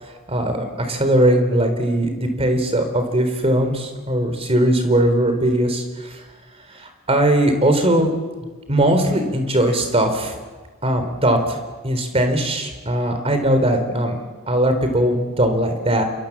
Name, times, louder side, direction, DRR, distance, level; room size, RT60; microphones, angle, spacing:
voice 1, 0.3-6.2 6.7-8.1 8.7-10.3 10.8-11.6 11.8-14.2 14.5-16.0, right 1 dB, 30° right, 7 dB, 4.0 m, -19 dB
27.0 x 23.5 x 7.4 m, 1.3 s
head